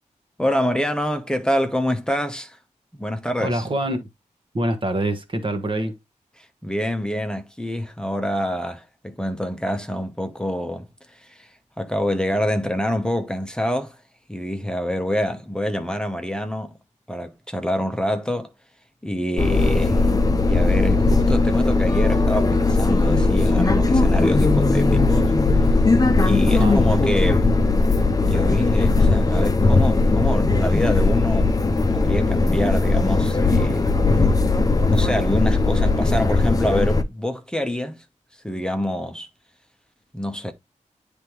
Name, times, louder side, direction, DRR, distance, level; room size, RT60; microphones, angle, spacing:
voice 1, 0.4-2.6 3.0-3.7 6.4-11.5 11.8-14.0 14.3-16.8 17.1-18.5 19.0-20.1 20.4-25.4 26.2-27.5 28.3-31.6 31.9-33.9 34.9-38.0 38.4-39.3 40.1-40.5, equal, 5° left, 0.9 m, -26 dB
voice 2, 3.4-4.1 4.5-5.9 26.5-26.8, right 1 dB, 40° right, 1.4 m, -25 dB
sound 1, 19.4-37.0, left 3 dB, 30° left, 0.7 m, -18 dB
9.5 x 3.5 x 3.1 m
wide cardioid pair, 80°, 13 cm